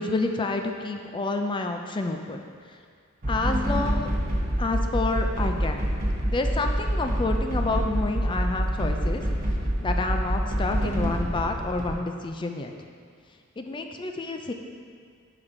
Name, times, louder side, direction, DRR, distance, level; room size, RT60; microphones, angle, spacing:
voice 1, 0.0-2.8 3.3-4.1 4.6-5.8 6.3-9.2 9.8-12.7 13.6-14.5, left 3 dB, 25° left, 4 dB, 0.4 m, -29 dB
sound 1, 3.2-12.0, equal, 40° right, 1.0 m, -26 dB
5.6 x 5.0 x 4.7 m, 2.1 s
head